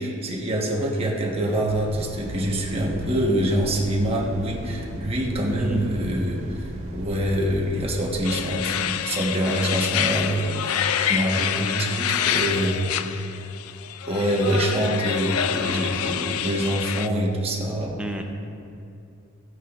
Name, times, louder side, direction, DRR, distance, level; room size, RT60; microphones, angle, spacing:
voice 1, 0.0-12.9 14.1-18.0, right 1 dB, 30° right, -3 dB, 1.2 m, -25 dB
sound 1, 1.7-8.2, equal, 65° right, 1.8 m, -36 dB
voice 2, 5.6-5.8 11.6-11.8 18.0-18.2, right 1 dB, 5° right, 2 dB, 0.6 m, -32 dB
sound 2, 8.2-17.1, left 9 dB, 85° left, 0.4 m, -27 dB
14.5 x 9.2 x 2.5 m, 2.6 s
head